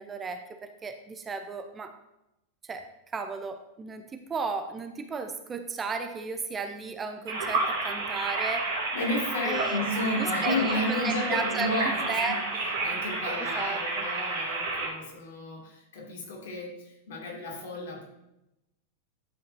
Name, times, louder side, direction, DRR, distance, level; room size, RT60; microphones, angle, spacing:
voice 1, 0.0-2.0 2.6-8.7 9.4-9.8 10.2-12.4 13.4-14.1, right 4 dB, 20° right, 8 dB, 0.6 m, -35 dB
sound 1, 7.3-14.9, right 3 dB, 55° right, 2.8 m, -30 dB
voice 2, 8.9-12.4 12.8-18.1, left 2 dB, 55° left, -1 dB, 2.4 m, -32 dB
11.0 x 7.7 x 2.7 m, 0.89 s
figure-of-eight pair, 90°, 0 cm